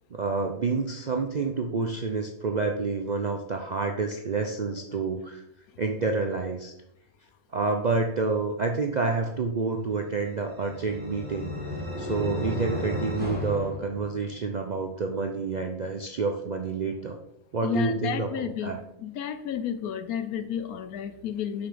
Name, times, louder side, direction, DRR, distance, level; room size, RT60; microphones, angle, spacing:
voice 1, 0.1-5.4 5.8-6.7 7.5-11.5 12.0-17.2 17.5-18.8, right 4 dB, 60° right, 3 dB, 0.4 m, -28 dB
sound 1, 10.0-14.6, left 1 dB, 5° right, 1.6 m, -34 dB
voice 2, 17.6-18.7 19.0-21.7, left 9 dB, 85° left, 10 dB, 1.2 m, -31 dB
5.9 x 5.8 x 5.1 m, 0.81 s
omnidirectional pair, 1.5 m